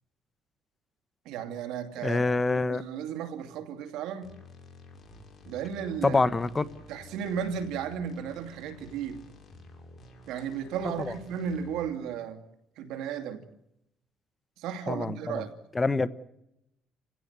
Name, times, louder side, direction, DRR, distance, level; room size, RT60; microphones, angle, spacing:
voice 1, 1.3-2.2 2.7-4.3 5.4-6.2 6.9-9.2 10.3-12.4 12.8-13.4 14.6-15.5, right 8 dB, 85° right, 2.7 m, -34 dB
voice 2, 2.0-2.8 6.0-6.7 11.0-11.1 14.9-15.4 15.7-16.1, left 3 dB, 20° left, 1.1 m, -26 dB
sound 1, 4.2-11.9, left 2 dB, 35° left, 6.4 m, -51 dB
30.0 x 16.5 x 8.2 m
cardioid pair, 110°, 0 cm